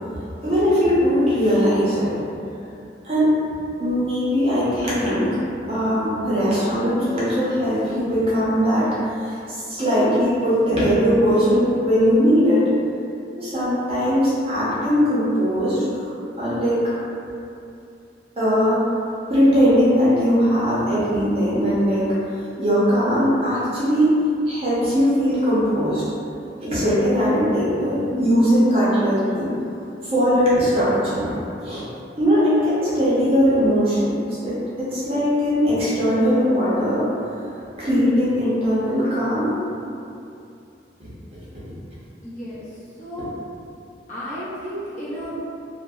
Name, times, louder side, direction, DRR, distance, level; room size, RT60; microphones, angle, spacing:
voice 1, 0.4-2.1 3.0-3.3 3.8-5.4 5.7-8.9 9.1-12.6 13.4-16.1 16.4-16.8 18.4-18.9 19.3-22.1 22.6-24.1 24.5-26.0 26.6-29.5 30.0-31.3 31.6-31.8 32.2-37.1 37.8-39.6 41.0-41.1 41.7-41.8, equal, 30° right, -11 dB, 0.6 m, -20 dB
voice 2, 42.2-43.3 44.1-45.3, equal, 40° left, -11 dB, 0.7 m, -33 dB
2.5 x 2.1 x 2.2 m, 2.6 s
head